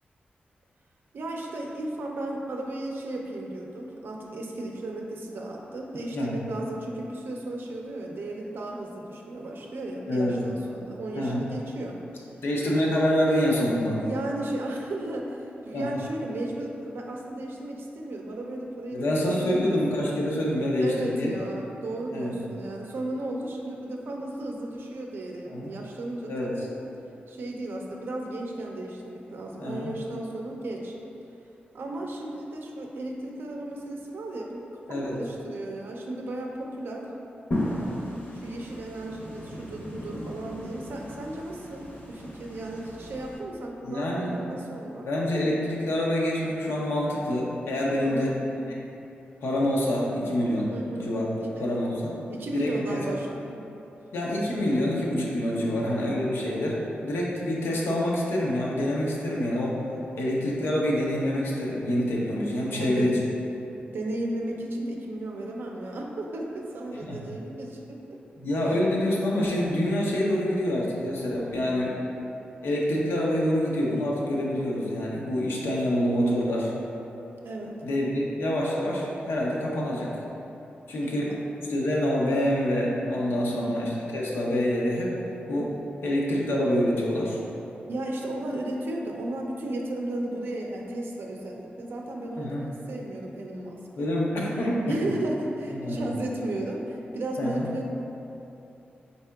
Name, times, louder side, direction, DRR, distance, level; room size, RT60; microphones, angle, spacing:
voice 1, 1.1-12.0 14.0-19.9 20.7-26.7 27.3-30.9 31.7-37.1 38.4-45.1 48.0-48.4 50.7-51.1 51.6-51.7 52.3-53.6 55.6-56.1 62.7-63.1 63.9-68.2 77.4-77.8 81.0-81.1 83.4-83.8 87.9-94.1 94.9-97.9, right 1 dB, 70° right, 0 dB, 0.5 m, -34 dB
voice 2, 10.1-10.4 11.1-11.5 12.4-14.0 15.7-15.9 18.9-21.3 22.1-22.3 25.5-25.7 26.3-26.5 29.6-29.9 34.9-35.2 43.8-44.4 45.0-48.3 49.4-51.3 51.6-52.1 52.5-53.0 54.1-56.8 57.0-59.8 60.2-63.2 67.1-67.2 68.4-72.0 72.6-76.7 77.8-80.1 80.9-81.3 81.7-85.1 85.5-85.7 86.0-87.4 92.4-92.6 94.0-95.0 95.7-96.0 97.4-97.7, left 1 dB, 90° left, -4 dB, 0.6 m, -26 dB
sound 1, 37.5-43.4, left 1 dB, 55° left, 0.8 m, -35 dB
4.1 x 3.6 x 2.2 m, 2.9 s
cardioid pair, 85°, 4 cm